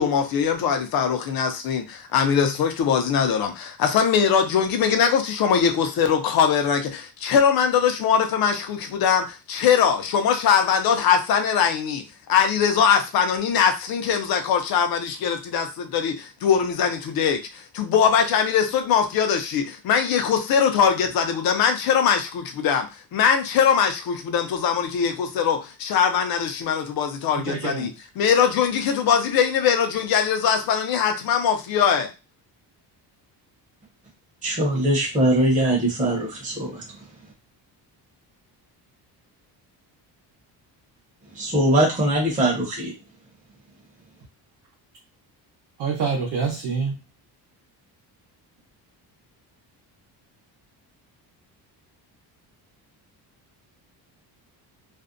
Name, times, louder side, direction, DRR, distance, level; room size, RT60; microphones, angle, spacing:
voice 1, 0.0-22.9 23.1-27.9 28.2-32.1, left 7 dB, 60° left, 0.6 m, -21 dB
voice 2, 27.4-27.9 45.8-47.0, right 5 dB, 75° right, 0.8 m, -26 dB
voice 3, 34.4-36.8 41.3-42.9, right 1 dB, 20° right, 0.7 m, -21 dB
2.5 x 2.1 x 2.5 m
cardioid pair, 175°, 40 cm